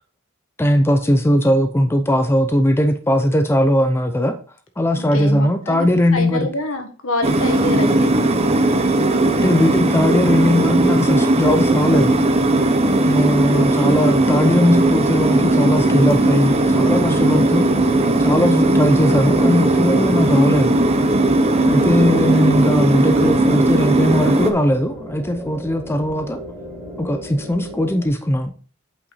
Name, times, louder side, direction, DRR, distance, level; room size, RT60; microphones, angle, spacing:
voice 1, 0.6-4.4 4.8-6.5 9.4-12.2 13.1-17.7 18.2-20.8 21.7-26.4 27.0-28.5, equal, 10° left, 0.5 m, -19 dB
voice 2, 5.0-8.1 13.5-14.0 21.6-22.0, left 2 dB, 65° left, 1.6 m, -27 dB
sound 1, 7.2-24.5, right 2 dB, 30° right, 0.9 m, -17 dB
sound 2, 16.4-28.1, left 1 dB, 10° right, 3.2 m, -35 dB
8.2 x 5.7 x 4.1 m
head